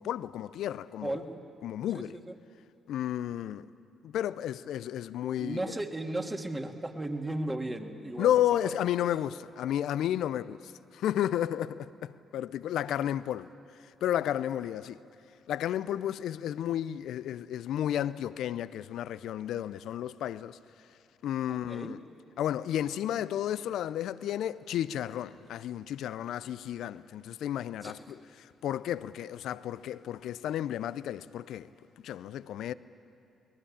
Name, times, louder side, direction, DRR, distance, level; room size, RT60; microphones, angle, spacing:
voice 1, 0.0-1.2 1.6-2.2 2.9-3.7 4.0-5.8 8.2-13.5 13.8-15.0 15.5-20.6 21.2-22.0 22.4-31.7 32.0-32.7, left 11 dB, 70° left, 0.5 m, -32 dB
voice 2, 1.0-1.4 1.9-2.4 5.4-8.4 21.5-22.0 27.8-28.1, right 1 dB, 20° right, 2.4 m, -36 dB
23.5 x 20.0 x 8.7 m
hypercardioid pair, 50°, 0 cm